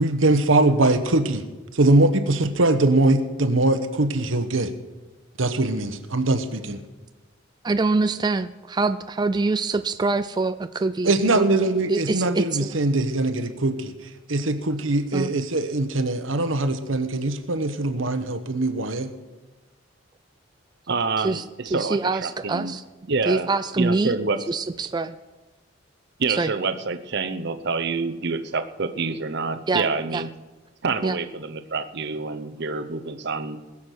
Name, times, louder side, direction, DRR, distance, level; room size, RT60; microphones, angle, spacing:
voice 1, 0.0-1.4 1.7-4.7 5.4-6.8 11.0-13.9 14.3-19.1, right 2 dB, 85° right, 9 dB, 1.2 m, -22 dB
voice 2, 7.6-11.6 11.9-12.8 15.1-15.3 21.2-21.4 21.7-22.8 23.3-24.2 24.5-25.2 26.4-26.5 29.7-29.8 30.1-30.2 31.0-31.2, right 3 dB, 20° right, 10 dB, 0.4 m, -24 dB
voice 3, 20.9-22.7 23.1-23.5 23.8-24.4 26.2-30.3 30.8-33.6, right 4 dB, 60° right, 11 dB, 0.9 m, -27 dB
20.5 x 7.4 x 6.5 m, 1.2 s
head